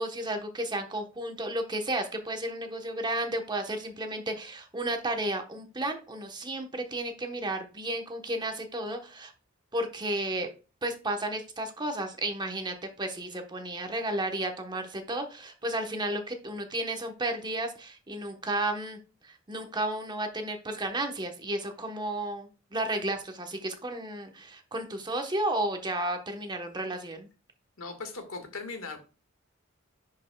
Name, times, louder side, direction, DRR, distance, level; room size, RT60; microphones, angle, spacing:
voice 1, 0.0-9.3 9.7-10.5 10.8-27.3, right 1 dB, 20° right, 5 dB, 1.1 m, -33 dB
voice 2, 27.8-29.0, left 3 dB, 90° left, 5 dB, 1.7 m, -38 dB
10.5 x 5.4 x 2.3 m, 0.33 s
head